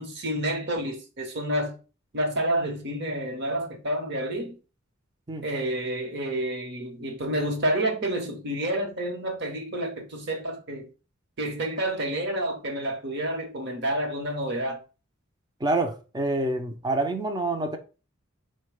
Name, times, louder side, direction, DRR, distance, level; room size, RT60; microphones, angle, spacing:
voice 1, 0.0-1.8 2.1-4.6 5.4-10.9 11.4-14.8, right 1 dB, 55° right, 1.0 m, -29 dB
voice 2, 15.6-17.8, right 2 dB, 20° right, 0.5 m, -27 dB
4.4 x 2.2 x 4.6 m
head